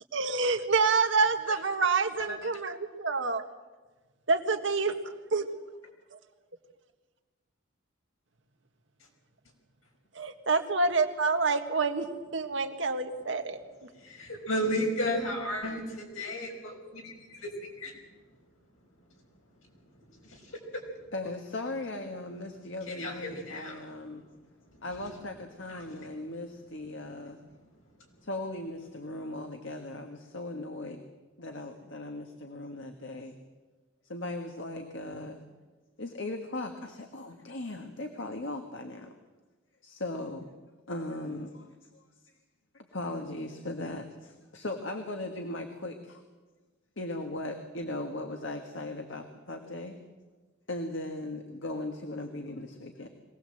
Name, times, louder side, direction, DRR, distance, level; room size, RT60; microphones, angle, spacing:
voice 1, 0.1-3.4 4.3-5.5 6.1-6.2 10.2-12.1 12.3-13.9, right 4 dB, 65° right, 6 dB, 1.6 m, -27 dB
voice 2, 14.0-17.5 17.8-17.9 20.2-20.4 20.7-20.8 22.9-23.7 25.7-25.8, equal, 85° left, 1 dB, 5.4 m, -33 dB
voice 3, 21.1-24.3 24.8-27.4 28.2-31.0 31.4-33.4 34.0-35.4 36.0-39.1 39.8-40.5 40.9-41.7 41.9-42.0 42.7-46.2 47.0-50.0 50.7-53.1, left 2 dB, 70° left, 5 dB, 1.6 m, -38 dB
23.0 x 18.0 x 7.8 m, 1.3 s
head